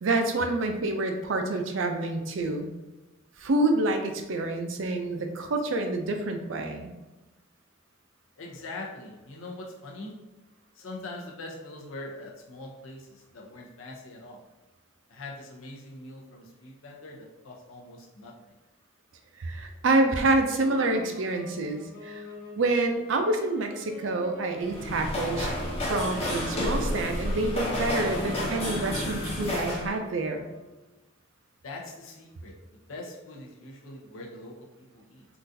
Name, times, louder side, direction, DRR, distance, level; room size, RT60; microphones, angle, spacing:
voice 1, 0.0-2.7 3.4-6.9 19.4-22.2 22.6-25.5 25.9-30.5, right 2 dB, 65° right, 5 dB, 0.4 m, -27 dB
voice 2, 8.4-10.2 10.7-14.4 15.1-18.3 19.6-19.8 31.6-35.3, left 2 dB, 75° left, -2 dB, 0.7 m, -43 dB
sound 1, 20.6-31.0, equal, 45° left, 1.3 m, -46 dB
sound 2, 24.6-29.9, left 1 dB, 30° left, 0.8 m, -30 dB
3.8 x 2.4 x 2.6 m, 1.1 s
head